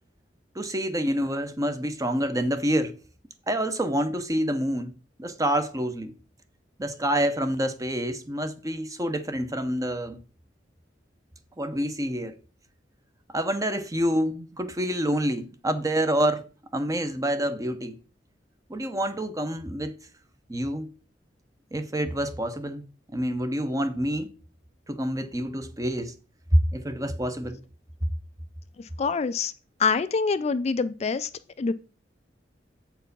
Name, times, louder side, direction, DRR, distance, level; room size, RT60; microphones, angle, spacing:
voice 1, 0.5-2.9 3.5-4.9 5.2-6.1 6.8-10.2 11.6-12.3 13.3-16.4 16.7-18.0 18.7-20.0 20.5-20.9 21.7-22.8 23.1-24.3 24.9-26.1 26.7-27.6, equal, 20° right, 0.7 m, -27 dB
voice 2, 28.8-29.5 29.8-31.3 31.6-31.7, left 5 dB, 35° left, 0.4 m, -25 dB
8.0 x 4.6 x 5.3 m
head